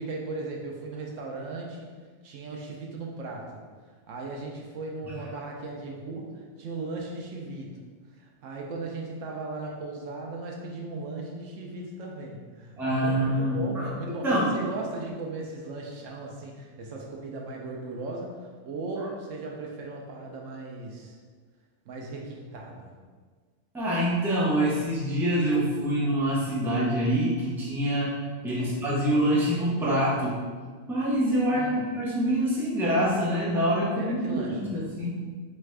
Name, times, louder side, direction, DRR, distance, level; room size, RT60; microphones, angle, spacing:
voice 1, 0.0-1.9 2.2-3.6 4.1-6.3 6.6-7.8 8.1-14.3 14.5-21.2 21.9-22.9 28.6-28.7 31.5-31.8 33.9-34.7, right 3 dB, 80° right, 0 dB, 1.0 m, -37 dB
voice 2, 12.8-14.5 23.7-30.4 30.9-35.2, equal, ahead, -6 dB, 0.6 m, -26 dB
3.6 x 3.3 x 3.3 m, 1.5 s
omnidirectional pair, 1.3 m